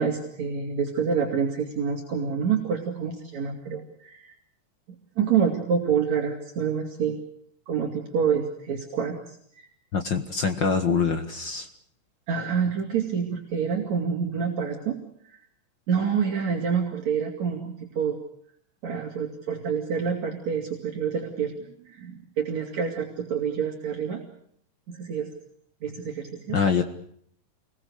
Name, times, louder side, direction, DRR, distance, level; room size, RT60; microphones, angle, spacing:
voice 1, 0.0-4.3 5.2-7.2 7.7-9.7 12.3-15.0 15.9-18.2 18.8-24.2 24.9-25.3 25.8-26.6, right 6 dB, 60° right, 0 dB, 4.0 m, -27 dB
voice 2, 9.9-11.7 26.5-26.8, left 5 dB, 50° left, 7 dB, 1.6 m, -24 dB
27.5 x 21.5 x 6.6 m, 0.65 s
omnidirectional pair, 3.7 m